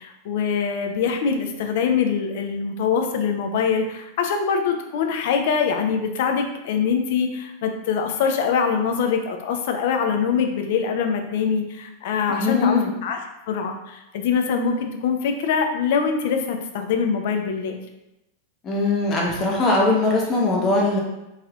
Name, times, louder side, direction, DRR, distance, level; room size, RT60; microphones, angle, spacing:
voice 1, 0.0-13.2 13.5-17.8, left 6 dB, 55° left, 5 dB, 0.4 m, -23 dB
voice 2, 12.3-12.9 18.6-21.0, left 2 dB, 30° left, -1 dB, 0.7 m, -21 dB
3.2 x 2.7 x 2.3 m, 0.95 s
figure-of-eight pair, 90°, 0 cm